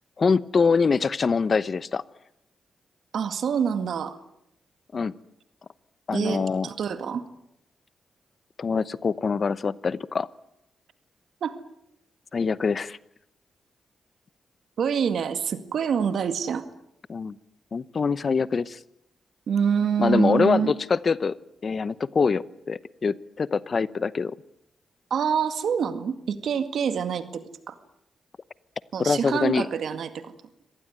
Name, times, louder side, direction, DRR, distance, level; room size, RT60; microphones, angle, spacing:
voice 1, 0.2-2.0 4.9-5.1 6.1-6.7 8.6-10.3 12.3-13.0 17.1-17.4 17.7-18.8 20.0-21.4 21.6-24.4 29.0-29.7, left 5 dB, 50° left, 18 dB, 0.8 m, -24 dB
voice 2, 3.1-4.2 6.1-7.2 11.4-11.6 14.8-16.7 19.5-20.7 25.1-27.8 28.9-30.3, right 7 dB, 75° right, 10 dB, 2.0 m, -26 dB
25.5 x 18.5 x 9.3 m, 0.79 s
cardioid pair, 60°, 0 cm